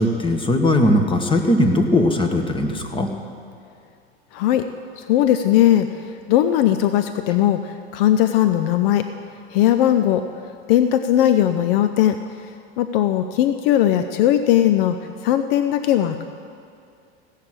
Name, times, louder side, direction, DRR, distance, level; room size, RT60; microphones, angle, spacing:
voice 1, 0.0-3.1, left 1 dB, 15° left, 4 dB, 1.4 m, -19 dB
voice 2, 4.3-4.6 5.0-5.9 6.3-9.1 9.5-10.2 10.7-12.2 12.8-15.0 15.2-16.2, left 11 dB, 60° left, 9 dB, 0.6 m, -18 dB
16.5 x 6.5 x 7.6 m, 2.4 s
hypercardioid pair, 90°, 32 cm